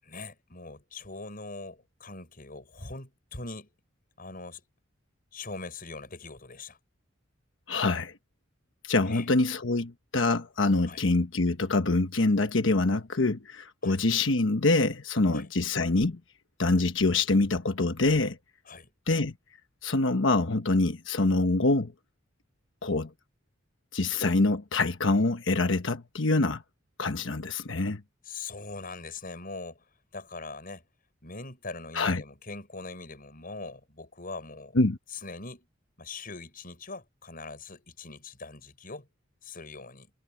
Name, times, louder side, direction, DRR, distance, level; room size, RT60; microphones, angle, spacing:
voice 1, 0.0-3.7 4.2-4.6 5.3-6.8 9.0-9.3 10.9-11.0 13.8-14.0 15.3-15.5 18.7-18.9 28.2-29.8 30.1-30.9 31.2-34.8 35.1-35.7 36.0-39.1 39.4-40.1, left 3 dB, 50° left, 7.1 m, -42 dB
voice 2, 7.7-8.1 8.8-16.2 16.6-18.4 19.1-19.3 19.8-21.9 22.8-23.1 23.9-26.6 27.0-28.0 31.9-32.2 34.7-35.0, left 2 dB, 75° left, 1.2 m, -25 dB
head